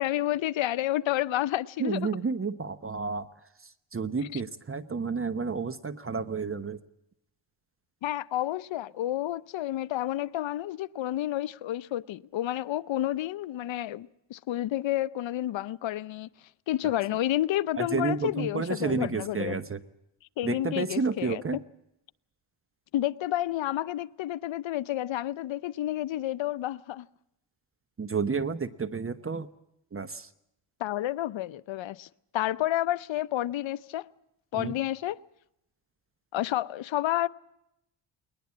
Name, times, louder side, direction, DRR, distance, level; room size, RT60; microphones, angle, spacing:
voice 1, 0.0-2.0 4.3-4.4 8.0-16.3 16.7-19.6 20.4-21.4 22.9-27.1 30.8-32.1 32.3-34.1 34.5-35.2 36.3-37.3, left 13 dB, 65° left, 0.8 m, -30 dB
voice 2, 1.8-3.3 3.6-6.8 17.8-19.8 20.4-21.6 28.0-29.5 29.9-30.3 34.5-34.7, right 4 dB, 25° right, 1.0 m, -31 dB
20.5 x 20.5 x 8.5 m
cardioid pair, 95°, 49 cm